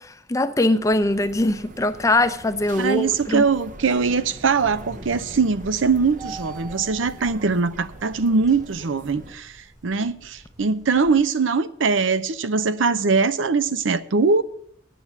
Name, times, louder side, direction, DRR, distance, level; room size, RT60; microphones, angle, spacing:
voice 1, 0.0-3.4, left 2 dB, 15° left, 0.5 m, -22 dB
sound 1, 0.8-9.3, right 2 dB, 40° right, 0.7 m, -44 dB
sound 2, 1.7-1.8 2.2-2.4 2.8-11.2, right 2 dB, 20° right, 1.2 m, -43 dB
voice 2, 2.8-9.6 9.8-14.4, right 4 dB, 85° right, 0.6 m, -21 dB
9.4 x 7.7 x 8.2 m
head